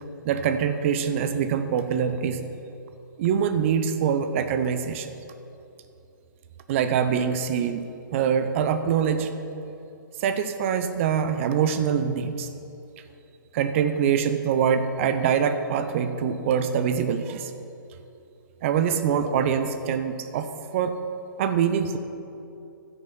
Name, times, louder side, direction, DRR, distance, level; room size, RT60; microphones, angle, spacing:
voice 1, 0.2-2.4 3.2-5.1 6.7-7.8 8.1-9.3 10.2-12.5 13.5-17.5 18.6-20.5 20.7-20.9 21.4-22.0, right 7 dB, 40° right, 10 dB, 0.6 m, -24 dB
13.5 x 6.3 x 5.4 m, 2.7 s
figure-of-eight pair, 125°, 11 cm